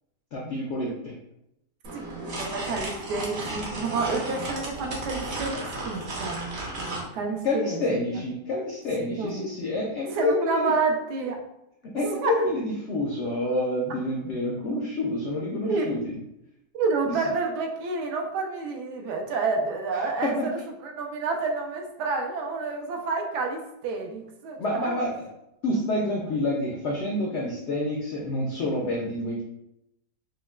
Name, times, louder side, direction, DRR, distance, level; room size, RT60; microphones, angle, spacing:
voice 1, 0.3-1.2 7.4-10.7 11.8-16.2 17.1-17.2 20.2-20.5 24.6-25.2 25.6-29.4, left 1 dB, 75° left, -2 dB, 0.6 m, -28 dB
sound 1, 1.8-7.1, right 2 dB, 55° right, 0.8 m, -34 dB
voice 2, 1.9-8.2 9.0-9.5 10.1-11.4 12.2-12.3 15.7-15.9 16.7-20.3 20.8-25.1, right 4 dB, 80° right, 2 dB, 1.2 m, -29 dB
5.2 x 2.1 x 2.3 m, 0.85 s
omnidirectional pair, 1.8 m